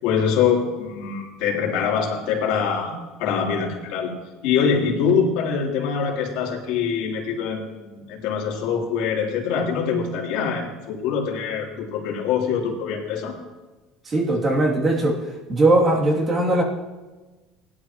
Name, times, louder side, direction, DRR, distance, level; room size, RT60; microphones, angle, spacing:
voice 1, 0.0-2.9 3.2-4.1 4.4-13.4, left 6 dB, 70° left, -2 dB, 3.2 m, -24 dB
voice 2, 14.0-15.2 15.5-16.6, right 2 dB, 30° right, -1 dB, 2.7 m, -19 dB
17.5 x 11.5 x 3.0 m, 1.2 s
supercardioid pair, 115°, 0 cm